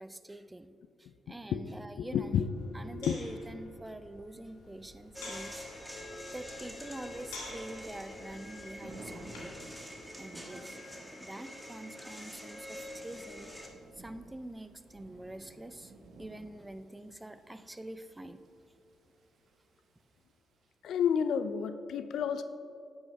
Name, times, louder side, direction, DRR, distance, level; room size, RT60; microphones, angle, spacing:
voice 1, 0.0-2.4 2.7-5.7 6.3-9.5 10.2-10.8 11.2-13.5 13.9-18.4, right 1 dB, 15° right, 11 dB, 0.5 m, -45 dB
voice 2, 2.0-2.5 2.9-3.2 20.8-22.4, left 8 dB, 70° left, 11 dB, 0.3 m, -30 dB
sound 1, 2.1-9.7, left 2 dB, 85° left, 1.7 m, -51 dB
Thunder / Rain, 4.5-21.1, right 2 dB, 65° right, 1.1 m, -56 dB
sound 2, 5.1-13.7, left 1 dB, ahead, 1.6 m, -46 dB
12.5 x 9.5 x 2.2 m, 2.5 s
hypercardioid pair, 40°, 0 cm